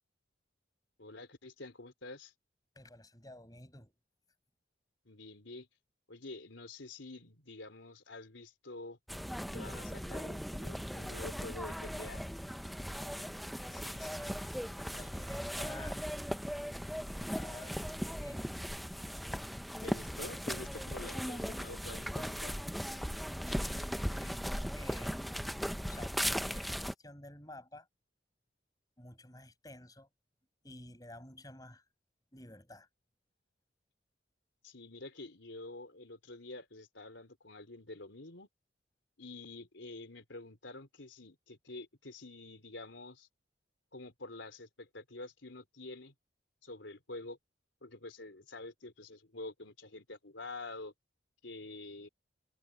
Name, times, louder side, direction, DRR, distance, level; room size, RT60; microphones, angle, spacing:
voice 1, 1.0-2.3 5.1-5.7 6.1-9.0 9.5-12.2 19.8-22.6 34.6-38.5 39.2-43.3 43.9-46.1 46.6-47.4 47.8-50.9 51.4-52.1, left 2 dB, 80° left, 3.8 m, -47 dB
voice 2, 2.7-3.9 13.7-16.0 17.3-17.8 18.2-18.5 23.5-25.1 25.9-27.9 29.0-30.1 30.6-31.8 32.3-32.9, left 1 dB, 20° left, 6.2 m, -52 dB
sound 1, 9.1-26.9, equal, ahead, 0.7 m, -38 dB
head